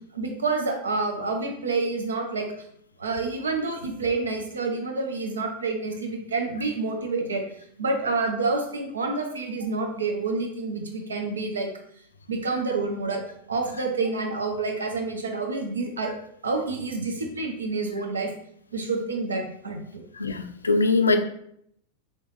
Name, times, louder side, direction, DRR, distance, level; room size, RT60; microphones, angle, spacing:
voice 1, 0.1-2.5 3.0-7.4 7.8-11.7 12.3-13.2 13.5-16.1 16.4-18.3 18.7-20.0, right 3 dB, 70° right, 2 dB, 0.6 m, -28 dB
voice 2, 20.1-21.2, left 3 dB, 75° left, 8 dB, 0.3 m, -22 dB
3.1 x 2.8 x 3.1 m, 0.69 s
figure-of-eight pair, 90°, 0 cm